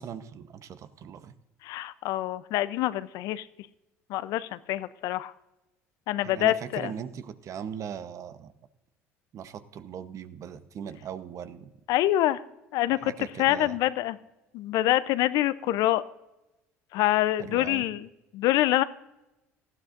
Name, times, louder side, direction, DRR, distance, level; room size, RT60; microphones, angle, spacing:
voice 1, 0.0-1.3 6.2-8.5 9.3-11.7 12.9-13.8 17.4-17.9, right 8 dB, 50° right, 12 dB, 0.9 m, -39 dB
voice 2, 1.6-3.5 4.1-5.3 6.1-6.9 11.9-12.4 12.7-13.1 13.4-14.2 14.5-16.0 16.9-18.1 18.3-18.8, left 15 dB, 70° left, 15 dB, 0.5 m, -25 dB
18.5 x 13.0 x 2.5 m, 0.98 s
hypercardioid pair, 75°, 7 cm